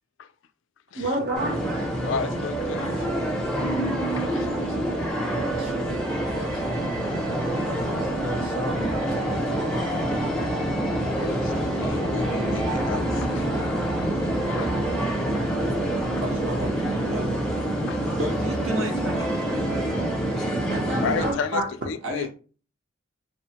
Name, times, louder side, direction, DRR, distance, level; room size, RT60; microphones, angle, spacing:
voice 1, 0.9-2.2 20.7-21.7, right 1 dB, 45° right, 0.6 m, -29 dB
sound 1, 1.3-21.3, right 1 dB, 5° left, 0.5 m, -26 dB
voice 2, 2.0-3.1 4.2-4.4 11.2-13.5 14.0-14.1 14.6-14.7 15.3-15.4 17.9-18.0 21.0-22.3, left 6 dB, 60° left, 0.3 m, -33 dB
voice 3, 4.3-7.0 7.7-9.8 16.2-17.4 17.9-20.0 22.0-22.3, equal, 85° right, 1.0 m, -35 dB
3.5 x 2.0 x 2.8 m
head